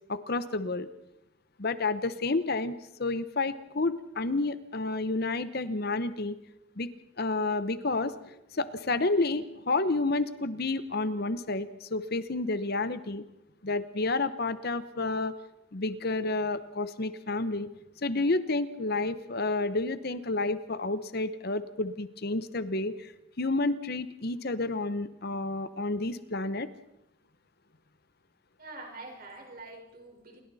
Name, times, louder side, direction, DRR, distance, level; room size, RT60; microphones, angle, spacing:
voice 1, 0.1-0.9 1.6-2.7 3.0-6.4 6.8-6.9 7.2-13.2 13.6-15.3 15.7-17.7 18.0-23.1 23.4-26.7, left 3 dB, 45° left, 13 dB, 0.9 m, -30 dB
voice 2, 28.6-30.4, right 2 dB, 45° right, 2 dB, 4.6 m, -45 dB
29.0 x 22.5 x 4.2 m, 0.85 s
head